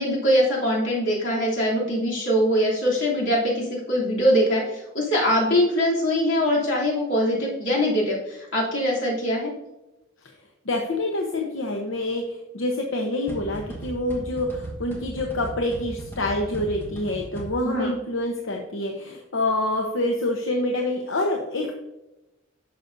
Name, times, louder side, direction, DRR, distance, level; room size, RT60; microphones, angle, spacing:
voice 1, 0.0-9.5 17.6-17.9, equal, 70° left, -5 dB, 3.0 m, -22 dB
voice 2, 10.6-21.7, left 1 dB, 85° left, 1 dB, 0.9 m, -27 dB
sound 1, 13.3-17.9, right 1 dB, 10° left, 1.5 m, -37 dB
11.0 x 6.5 x 2.7 m, 0.97 s
head